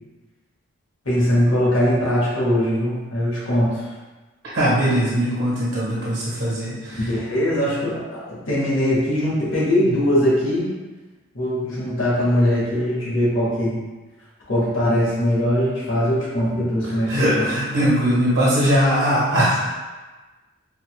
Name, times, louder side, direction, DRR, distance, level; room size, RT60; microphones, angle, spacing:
voice 1, 1.0-3.7 6.9-10.7 11.3-13.8 14.5-17.5, equal, 80° left, -7 dB, 1.3 m, -21 dB
voice 2, 4.5-7.1 17.1-19.7, equal, 80° right, -9 dB, 1.0 m, -20 dB
3.9 x 2.1 x 3.0 m, 1.2 s
head